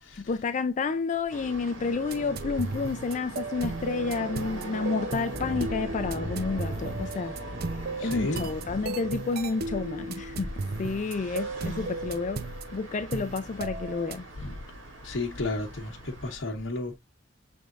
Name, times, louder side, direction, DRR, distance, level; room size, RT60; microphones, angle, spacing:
voice 1, 0.2-7.4 8.0-10.5 10.8-14.3, left 4 dB, 40° left, 0.4 m, -30 dB
sound 1, 1.3-16.4, right 2 dB, 80° right, 2.8 m, -42 dB
sound 2, 1.9-14.2, right 3 dB, 55° right, 0.6 m, -36 dB
sound 3, 5.3-9.9, equal, 5° right, 1.8 m, -40 dB
voice 2, 8.0-8.5 14.4-14.5 15.0-17.0, left 2 dB, 70° left, 1.0 m, -33 dB
6.3 x 3.5 x 2.4 m
head